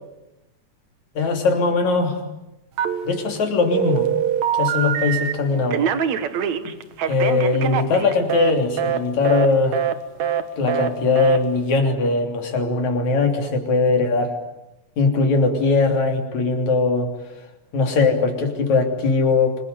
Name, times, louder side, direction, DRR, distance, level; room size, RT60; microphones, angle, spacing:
voice 1, 1.2-2.2 3.1-4.1 4.5-5.8 6.6-6.7 7.0-9.8 10.6-14.3 15.0-17.1 17.7-19.6, left 3 dB, 65° left, 4 dB, 4.6 m, -20 dB
Telephone, 2.8-3.4 3.7-5.3 5.7-8.5 8.8-9.0 9.2-9.5 9.7-9.9 10.2-10.4 10.7-10.9 11.2-11.4, right 9 dB, 65° right, 2.7 m, -23 dB
28.0 x 22.0 x 9.5 m, 0.95 s
omnidirectional pair, 3.5 m